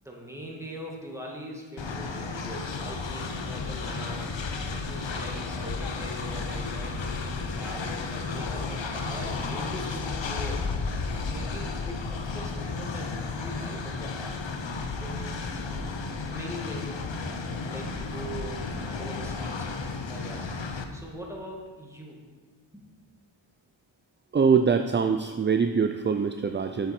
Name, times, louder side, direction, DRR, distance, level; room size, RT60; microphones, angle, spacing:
voice 1, 0.0-4.3 4.6-10.8 11.2-14.4 14.8-17.0 17.6-20.5 20.9-22.2 22.7-22.9, equal, 5° right, -2 dB, 1.8 m, -42 dB
Train, 1.8-20.8, left 4 dB, 65° left, 0.8 m, -33 dB
voice 2, 24.3-26.9, right 6 dB, 25° right, 7 dB, 0.3 m, -23 dB
7.6 x 7.0 x 4.3 m, 1.4 s
wide cardioid pair, 45°, 49 cm